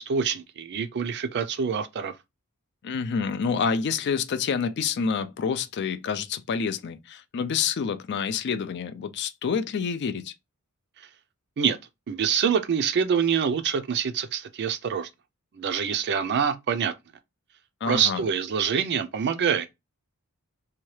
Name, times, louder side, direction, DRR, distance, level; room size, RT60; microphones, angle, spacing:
voice 1, 0.0-2.1 11.6-11.8 12.1-15.1 15.5-16.9 17.9-19.7, right 7 dB, 50° right, 0.4 m, -25 dB
voice 2, 2.8-10.3 17.8-18.2, left 6 dB, 50° left, 0.4 m, -28 dB
2.8 x 2.2 x 3.1 m
head